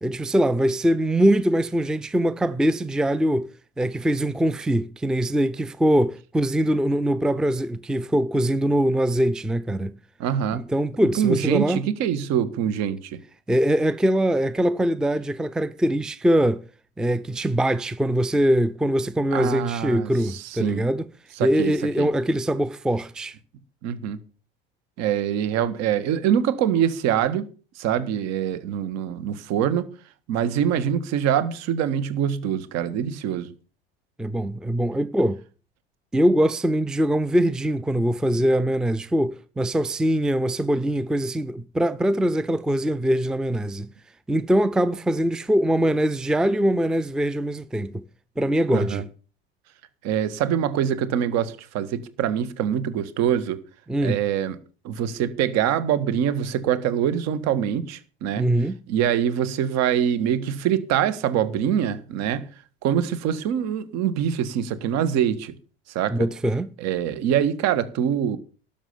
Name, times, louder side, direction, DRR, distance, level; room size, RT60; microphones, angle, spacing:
voice 1, 0.0-10.0 10.5-11.9 13.5-16.6 17.0-21.1 21.4-23.4 34.2-35.4 36.1-43.9 44.3-48.1 48.4-49.1 53.9-54.2 58.4-58.8 66.1-66.7, right 1 dB, ahead, 0.5 m, -22 dB
voice 2, 10.2-10.6 11.2-13.2 19.3-20.8 21.4-21.7 22.0-22.1 23.8-24.2 25.0-27.5 27.8-29.9 30.3-33.5 48.7-49.0 50.0-53.6 54.0-54.6 54.8-58.5 58.9-62.5 62.8-65.5 66.0-66.2 66.8-68.4, right 9 dB, 55° right, 1.8 m, -24 dB
12.5 x 7.5 x 7.1 m
hypercardioid pair, 80°, 31 cm